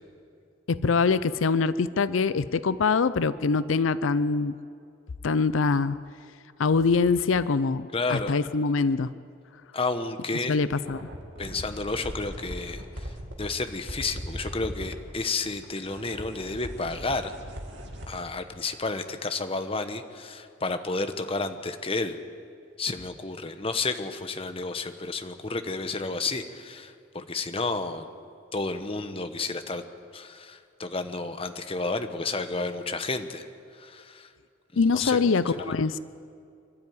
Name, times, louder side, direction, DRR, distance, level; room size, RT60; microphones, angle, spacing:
voice 1, 0.7-4.5 5.2-6.0 6.6-9.1 10.5-11.1 34.8-36.0, left 4 dB, 90° left, 15 dB, 0.6 m, -24 dB
voice 2, 7.9-8.3 9.7-10.6 11.4-13.1 13.4-17.3 18.1-22.2 22.8-28.1 28.5-29.8 30.1-33.5 33.7-34.3 34.7-35.7, left 3 dB, 30° left, 8 dB, 1.0 m, -31 dB
sound 1, 10.8-14.9 15.4-18.2, equal, 65° right, 2.6 m, -39 dB
26.0 x 12.5 x 9.5 m, 2.4 s
head